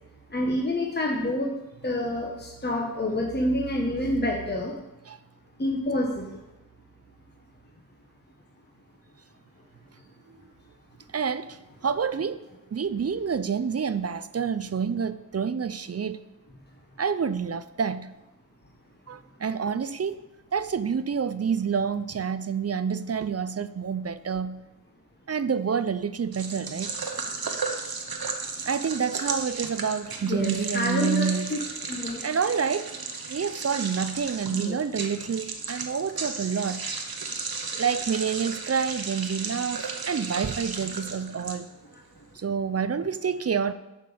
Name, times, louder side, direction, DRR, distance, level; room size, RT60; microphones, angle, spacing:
voice 1, 0.3-1.5 1.8-4.7 5.6-6.4 30.2-31.6 31.9-32.2 34.5-34.7, left 1 dB, 30° left, 1.1 m, -28 dB
voice 2, 11.1-11.6 11.8-12.4 12.7-16.2 17.0-18.1 19.1-20.2 20.5-24.6 25.3-26.9 28.7-31.6 32.2-32.9 33.3-36.9 37.8-41.7 42.4-43.7, right 6 dB, 45° right, 0.4 m, -28 dB
sound 1, 26.3-41.9, right 4 dB, 80° right, 1.0 m, -34 dB
7.5 x 5.2 x 6.9 m
wide cardioid pair, 65°, 36 cm